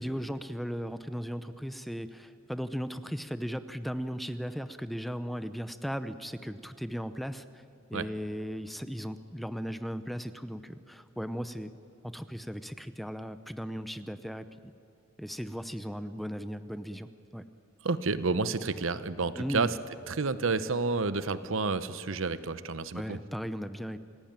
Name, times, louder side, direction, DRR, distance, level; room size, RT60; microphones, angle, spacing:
voice 1, 0.0-7.6 7.9-11.7 12.0-14.7 15.2-17.4 19.4-19.7 22.9-24.0, equal, ahead, 11 dB, 0.7 m, -37 dB
voice 2, 17.8-19.8 20.1-23.2, right 4 dB, 70° right, 13 dB, 0.9 m, -30 dB
27.0 x 17.5 x 9.0 m, 2.6 s
head